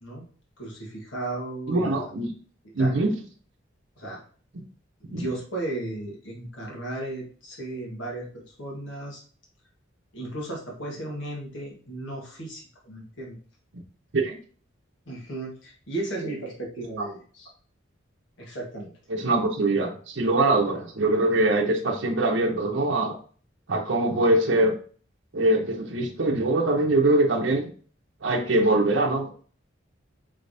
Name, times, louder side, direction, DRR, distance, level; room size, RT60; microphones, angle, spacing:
voice 1, 0.6-2.0 2.8-2.9 4.0-4.2 5.1-9.2 10.1-13.4 15.1-17.5 18.4-18.9, right 2 dB, 75° left, -2 dB, 1.5 m, -35 dB
voice 2, 1.7-2.3 2.7-3.2 5.1-5.3 14.1-14.4 19.1-23.2 23.7-24.8 25.3-27.7 28.2-29.3, right 2 dB, 70° right, 0 dB, 0.7 m, -23 dB
5.5 x 3.3 x 2.7 m, 0.42 s
head